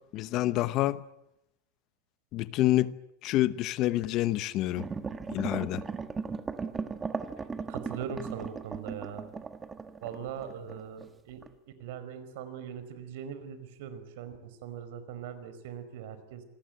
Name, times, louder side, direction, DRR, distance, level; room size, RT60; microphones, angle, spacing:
voice 1, 0.1-1.0 2.3-2.9 3.2-4.9 5.3-5.8, left 15 dB, 40° left, 0.9 m, -27 dB
sound 1, 4.8-11.1 11.4-11.5, right 5 dB, 15° right, 1.4 m, -37 dB
voice 2, 7.7-9.3 10.0-11.4 11.8-16.4, right 8 dB, 65° right, 5.0 m, -41 dB
28.0 x 21.0 x 8.9 m
supercardioid pair, 165°, 0 cm